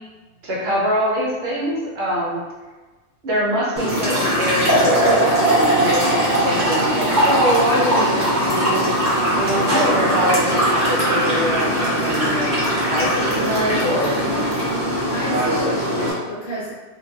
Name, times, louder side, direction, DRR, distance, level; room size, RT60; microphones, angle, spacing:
voice 1, 0.4-2.4 3.2-5.2 5.7-8.9 9.3-12.5 12.9-14.2, equal, 60° right, -5 dB, 0.9 m, -23 dB
sound 1, 3.8-16.1, right 1 dB, 20° right, 0.5 m, -20 dB
voice 2, 11.6-12.0 15.1-16.7, left 1 dB, 60° left, -6 dB, 1.0 m, -29 dB
2.5 x 2.2 x 2.2 m, 1.2 s
omnidirectional pair, 1.2 m